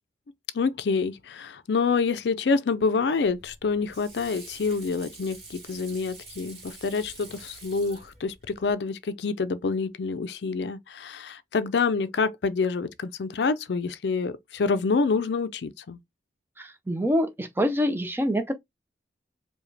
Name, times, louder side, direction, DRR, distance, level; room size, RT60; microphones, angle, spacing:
voice 1, 0.5-16.0, left 4 dB, 75° left, 0.4 m, -27 dB
Water / Sink (filling or washing), 3.2-8.7, right 3 dB, 35° right, 2.1 m, -47 dB
voice 2, 16.6-18.5, equal, 15° right, 0.5 m, -26 dB
4.8 x 2.2 x 3.2 m
head